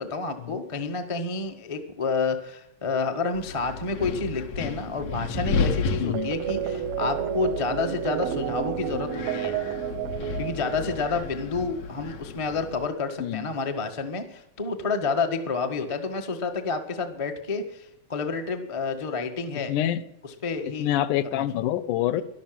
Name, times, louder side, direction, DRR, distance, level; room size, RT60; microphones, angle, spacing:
voice 1, 0.0-9.6 10.4-19.7 20.2-20.9 21.3-21.5, left 4 dB, 30° left, 5 dB, 0.5 m, -29 dB
Wind, 3.3-12.9, left 4 dB, 65° left, 2.3 m, -33 dB
voice 2, 6.0-6.3 13.2-13.5 19.7-20.0 20.8-22.2, left 12 dB, 85° left, 12 dB, 2.3 m, -26 dB
sound 1, 6.1-11.3, right 10 dB, 75° right, 1.6 m, -31 dB
13.5 x 12.0 x 7.5 m, 0.78 s
omnidirectional pair, 3.6 m